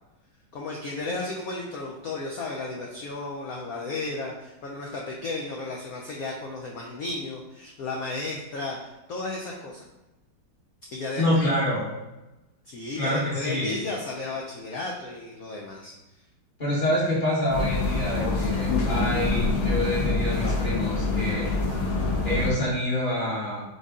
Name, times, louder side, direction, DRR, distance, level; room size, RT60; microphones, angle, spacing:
voice 1, 0.5-9.8 10.9-11.5 12.6-15.9, left 2 dB, 80° left, -1 dB, 0.8 m, -34 dB
voice 2, 11.2-11.9 12.9-13.8 16.6-21.5 22.2-23.6, left 1 dB, 30° left, -7 dB, 1.2 m, -26 dB
sound 1, 17.5-22.5, left 3 dB, 55° left, 1.1 m, -26 dB
3.9 x 3.8 x 3.6 m, 1.0 s
omnidirectional pair, 2.2 m